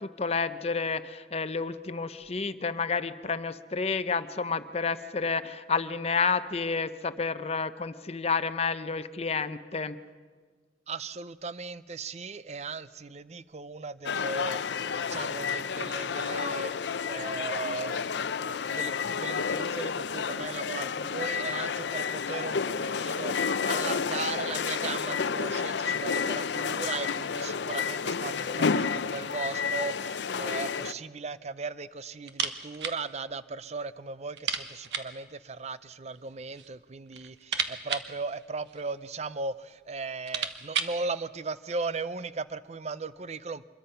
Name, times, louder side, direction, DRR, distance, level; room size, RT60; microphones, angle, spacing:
voice 1, 0.0-10.0, left 5 dB, 35° left, 12 dB, 0.7 m, -30 dB
voice 2, 10.9-43.7, right 4 dB, 40° right, 15 dB, 0.6 m, -37 dB
sound 1, 14.1-30.9, left 6 dB, 80° left, 0.6 m, -30 dB
sound 2, 32.3-33.0 33.3-33.4 33.7-33.8 34.3-35.2 36.1-36.7 37.1-39.0 39.7-39.8 40.1-41.0, right 7 dB, 85° right, 1.3 m, -34 dB
25.5 x 21.5 x 5.7 m, 1.5 s
head